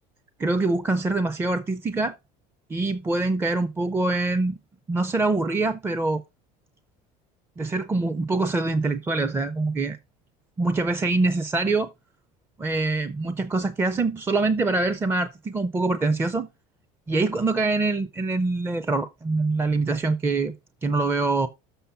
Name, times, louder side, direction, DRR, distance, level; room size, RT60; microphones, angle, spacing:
voice 1, 0.4-2.2 2.7-4.6 4.9-6.2 7.6-10.0 10.6-11.9 12.6-16.5 17.1-20.5 20.8-21.5, right 3 dB, 10° right, 0.5 m, -24 dB
6.9 x 5.8 x 5.5 m
cardioid pair, 145°, 18 cm